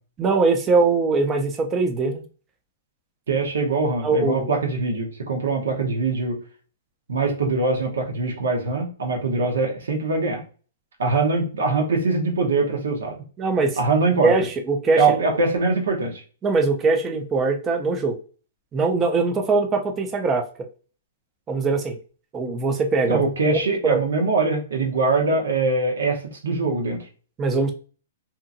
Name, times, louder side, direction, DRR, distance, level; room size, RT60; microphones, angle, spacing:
voice 1, 0.2-2.2 4.0-4.5 13.4-13.8 14.2-15.2 16.4-18.2 18.7-20.5 21.5-22.0 22.3-23.3 23.8-24.0 27.4-27.7, right 3 dB, 20° right, 5 dB, 0.4 m, -21 dB
voice 2, 3.3-6.4 7.1-10.4 11.0-13.2 13.8-14.3 15.0-16.2 23.0-27.1, right 3 dB, 85° right, 1 dB, 0.9 m, -23 dB
2.8 x 2.5 x 2.5 m, 0.38 s
hypercardioid pair, 150°, 0 cm